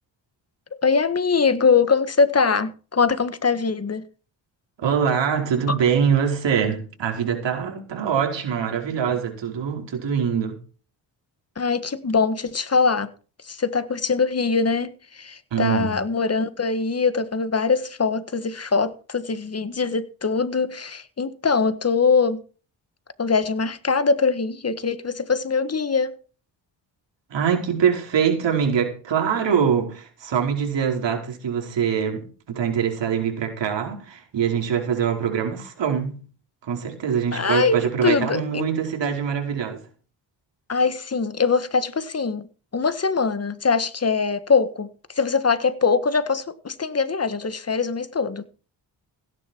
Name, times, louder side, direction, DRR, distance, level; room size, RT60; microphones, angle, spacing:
voice 1, 0.8-4.0 5.7-5.8 11.6-13.1 13.4-22.4 23.2-26.1 37.3-38.7 40.7-42.5 42.7-44.9 45.1-48.4, left 5 dB, 35° left, 1.6 m, -22 dB
voice 2, 4.8-10.6 15.5-16.0 27.3-36.2 36.6-39.8, right 7 dB, 70° right, 5.0 m, -23 dB
16.5 x 10.5 x 4.6 m
cardioid pair, 90°, 45 cm